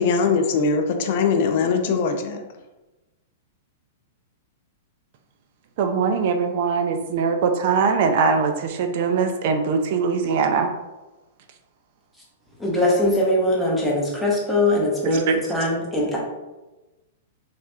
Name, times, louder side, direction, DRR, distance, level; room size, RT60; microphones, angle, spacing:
voice 1, 0.0-2.4, left 5 dB, 50° left, 5 dB, 0.3 m, -21 dB
voice 2, 5.8-10.7 15.1-15.3, right 5 dB, 55° right, 6 dB, 0.3 m, -21 dB
voice 3, 12.6-16.2, left 1 dB, ahead, -5 dB, 0.7 m, -21 dB
3.3 x 2.4 x 2.6 m, 1.1 s
hypercardioid pair, 155°, 0 cm